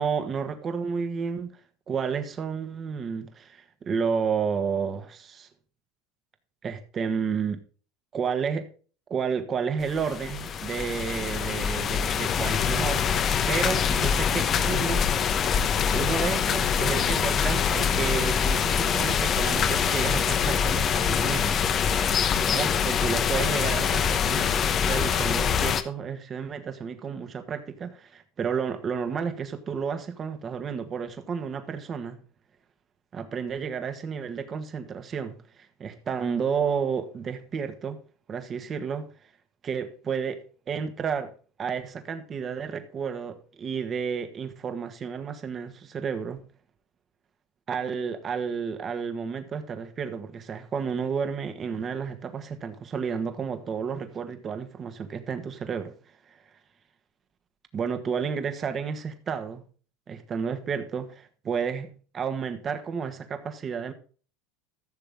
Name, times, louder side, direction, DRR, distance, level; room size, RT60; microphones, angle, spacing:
voice 1, 0.0-1.6 1.9-5.5 6.6-7.6 8.1-8.7 9.1-13.1 13.5-15.1 15.9-21.6 22.5-24.5 24.8-32.2 33.1-35.3 35.8-38.0 38.3-39.1 39.6-41.3 41.6-46.4 47.7-55.9 56.3-56.4 57.7-59.6 60.1-63.9, right 6 dB, 35° right, 1.6 m, -31 dB
sound 1, 9.8-25.8, left 7 dB, 40° left, 1.0 m, -24 dB
14.5 x 6.8 x 3.7 m
supercardioid pair, 105°, 0 cm